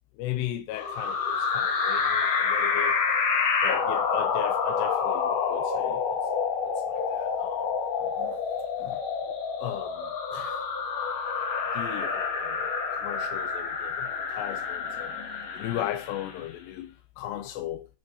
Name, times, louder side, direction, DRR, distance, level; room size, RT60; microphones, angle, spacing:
voice 1, 0.2-3.0 3.6-6.0 6.7-7.6 8.0-8.4 8.8-9.0 9.6-10.7 11.7-12.6 12.9-15.1 15.5-17.9, left 13 dB, 90° left, 2.8 m, -36 dB
sound 1, 0.7-16.4, left 5 dB, 60° left, 2.8 m, -28 dB
10.0 x 4.1 x 6.4 m
omnidirectional pair, 4.8 m